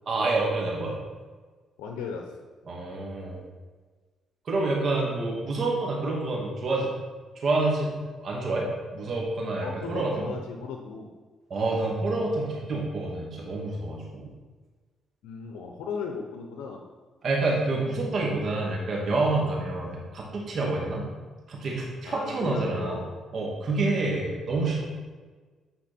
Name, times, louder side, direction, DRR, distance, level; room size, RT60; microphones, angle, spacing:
voice 1, 0.1-0.9 2.7-3.4 4.5-6.9 7.4-10.3 11.5-14.3 17.2-21.1 21.5-23.0 23.3-24.9, right 2 dB, 55° right, -2 dB, 2.4 m, -28 dB
voice 2, 1.8-2.3 9.6-11.1 15.2-16.8 22.0-23.2, left 5 dB, 90° left, 2 dB, 0.8 m, -36 dB
9.7 x 4.4 x 4.4 m, 1.4 s
cardioid pair, 75°, 0 cm